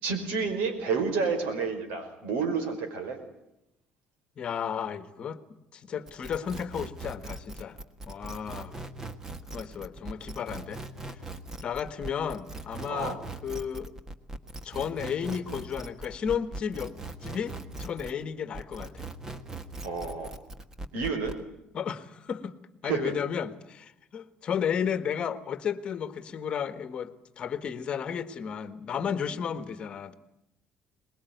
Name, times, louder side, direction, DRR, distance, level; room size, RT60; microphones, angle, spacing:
voice 1, 0.0-3.2 12.9-13.2 19.8-20.3 20.9-21.4 22.8-23.1, right 5 dB, 85° right, 7 dB, 5.1 m, -30 dB
voice 2, 4.4-5.4 5.7-7.8 8.1-8.8 9.5-10.8 11.6-13.9 14.6-16.9 17.2-19.1 21.7-22.5 22.8-30.2, left 7 dB, 40° left, 13 dB, 1.5 m, -33 dB
sound 1, 6.1-18.2 18.5-21.4, right 2 dB, 20° right, 1.5 m, -40 dB
23.0 x 21.0 x 9.3 m, 0.87 s
cardioid pair, 145°, 3 cm